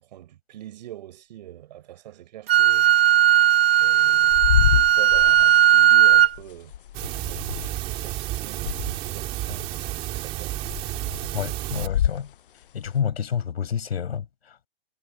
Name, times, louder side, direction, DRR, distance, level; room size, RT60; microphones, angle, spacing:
voice 1, 0.0-2.9 3.8-6.7 7.2-7.7 8.0-10.6, right 13 dB, 45° right, 7.0 m, -43 dB
Wind instrument woodwind instrument, 2.5-6.3, right 12 dB, 70° right, 1.6 m, -17 dB
sound 1, 4.1-8.3 8.6-10.0 10.3-12.3 12.9-13.0, left 10 dB, 60° left, 0.7 m, -27 dB
sound 2, 6.9-11.9, right 16 dB, 20° right, 2.7 m, -31 dB
voice 2, 11.3-12.3 12.7-14.7, left 8 dB, 75° left, 7.0 m, -29 dB
hypercardioid pair, 170°, 31 cm